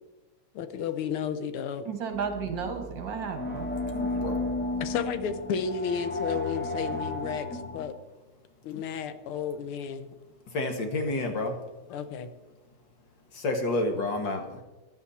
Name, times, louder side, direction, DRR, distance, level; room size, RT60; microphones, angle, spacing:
voice 1, 0.5-1.9 4.8-7.9 8.6-10.1 11.9-12.3, left 7 dB, 90° left, 11 dB, 1.8 m, -32 dB
voice 2, 1.9-3.7, right 6 dB, 60° right, 6 dB, 2.3 m, -33 dB
sound 1, 2.1-7.9, left 2 dB, 5° left, 1.2 m, -33 dB
voice 3, 3.9-4.4 10.5-11.6 13.3-14.6, left 2 dB, 60° left, 4 dB, 2.4 m, -29 dB
15.0 x 11.0 x 4.3 m, 1.1 s
omnidirectional pair, 2.3 m